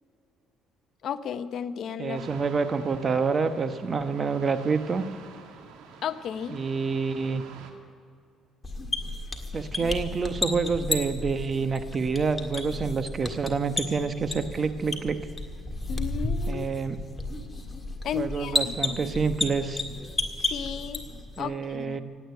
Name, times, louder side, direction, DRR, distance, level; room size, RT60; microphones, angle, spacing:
voice 1, 1.0-2.3 6.0-6.6 15.9-16.6 18.0-19.0 20.4-21.0 21.4-22.0, left 8 dB, 60° left, 12 dB, 0.7 m, -34 dB
voice 2, 2.0-5.1 6.5-7.4 9.5-15.2 16.5-17.0 18.1-19.8 21.4-22.0, right 5 dB, 35° right, 10 dB, 1.0 m, -27 dB
sound 1, 2.1-7.7, right 6 dB, 90° right, 1.9 m, -47 dB
sound 2, 8.6-21.4, left 2 dB, 20° left, 1.8 m, -33 dB
17.0 x 9.1 x 8.0 m, 2.4 s
cardioid pair, 100°, 0 cm